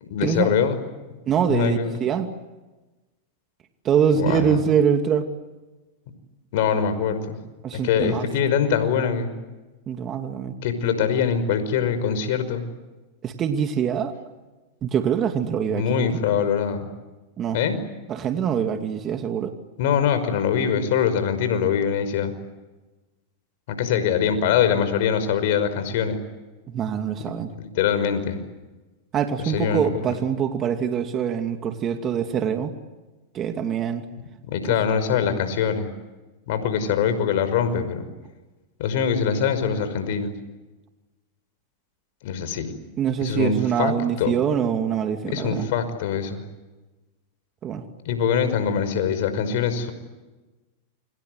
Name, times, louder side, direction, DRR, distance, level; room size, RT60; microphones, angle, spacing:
voice 1, 0.1-0.8 1.5-2.0 4.2-4.6 6.5-7.4 7.7-9.3 10.6-12.6 15.7-16.9 17.5-17.8 19.8-22.3 23.7-26.2 27.6-28.4 29.5-29.9 34.5-35.9 36.5-38.1 38.8-40.3 42.2-42.7 43.2-44.3 45.3-46.4 48.1-49.9, left 7 dB, 65° left, 10 dB, 5.6 m, -23 dB
voice 2, 1.3-2.3 3.8-5.3 7.6-8.2 9.9-10.6 13.2-14.1 14.8-16.2 17.4-17.6 18.1-19.5 26.7-27.5 29.1-32.7 33.3-34.0 34.7-34.8 43.0-45.7 47.6-47.8, right 8 dB, 35° right, 6 dB, 2.6 m, -24 dB
29.0 x 24.5 x 8.1 m, 1.2 s
hypercardioid pair, 110°, 0 cm